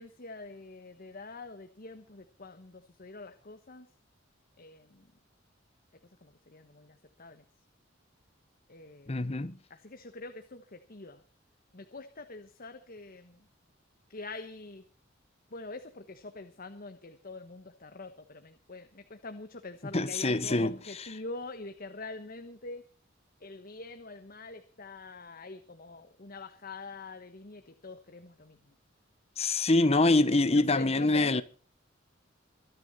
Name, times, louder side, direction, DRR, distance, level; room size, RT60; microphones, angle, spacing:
voice 1, 0.0-3.9 4.6-5.1 6.2-7.5 8.7-9.4 9.7-11.2 11.7-13.5 14.1-14.9 15.5-22.8 23.4-28.7 30.5-31.4, left 3 dB, 50° left, 1.3 m, -44 dB
voice 2, 9.1-9.6 19.9-21.1 29.4-31.4, left 2 dB, 35° left, 1.0 m, -25 dB
24.0 x 9.8 x 4.2 m
head